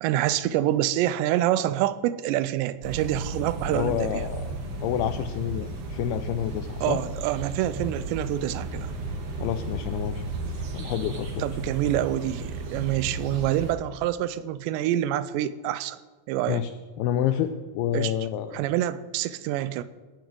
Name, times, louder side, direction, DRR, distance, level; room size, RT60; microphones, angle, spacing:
voice 1, 0.0-4.2 6.8-8.9 11.4-16.0 16.3-16.6 17.9-18.1 18.5-19.8, right 13 dB, 85° right, 15 dB, 2.8 m, -26 dB
sound 1, 2.8-13.7, right 2 dB, 60° right, 1.5 m, -34 dB
voice 2, 3.7-4.4 4.8-7.0 9.4-11.4 16.5-16.7 17.0-18.6, left 10 dB, 85° left, 10 dB, 2.3 m, -28 dB
18.5 x 7.3 x 7.6 m, 1.3 s
omnidirectional pair, 5.1 m